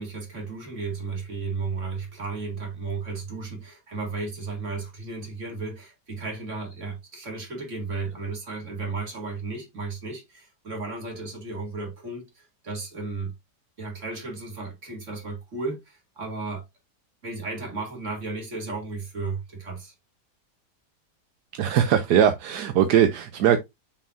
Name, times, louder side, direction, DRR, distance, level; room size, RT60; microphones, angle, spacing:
voice 1, 0.0-13.3 13.8-16.7 17.2-19.9, right 3 dB, 45° right, 2.8 m, -34 dB
voice 2, 21.5-23.6, right 9 dB, 75° right, 1.3 m, -20 dB
6.7 x 5.5 x 2.6 m
omnidirectional pair, 1.8 m